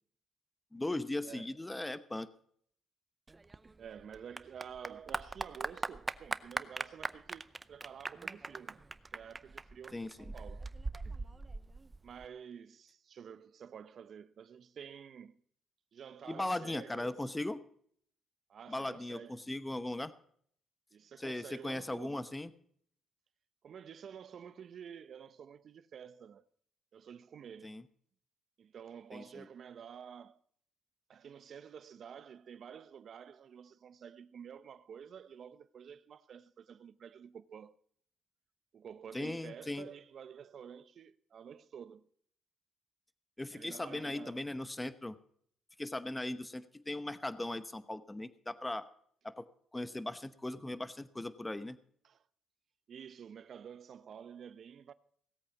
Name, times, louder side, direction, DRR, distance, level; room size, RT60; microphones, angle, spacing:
voice 1, 0.7-2.3 9.9-10.3 16.3-17.6 18.7-20.1 21.2-22.5 27.6-27.8 29.1-29.5 39.1-39.9 43.4-45.2 45.8-48.8 49.2-49.5 49.7-51.8, left 1 dB, 15° left, 0.9 m, -38 dB
voice 2, 1.2-1.5 3.8-8.8 9.1-10.7 12.0-15.4 15.9-17.2 18.5-19.5 20.9-22.2 23.6-26.5 26.9-27.8 28.6-30.4 31.1-37.8 38.7-42.1 43.5-44.5 52.0-52.2 52.9-54.9, right 8 dB, 60° right, 0.7 m, -50 dB
Clapping / Applause, 3.3-12.3, right 3 dB, 25° right, 0.6 m, -41 dB
17.5 x 8.3 x 5.8 m
cardioid pair, 90°, 0 cm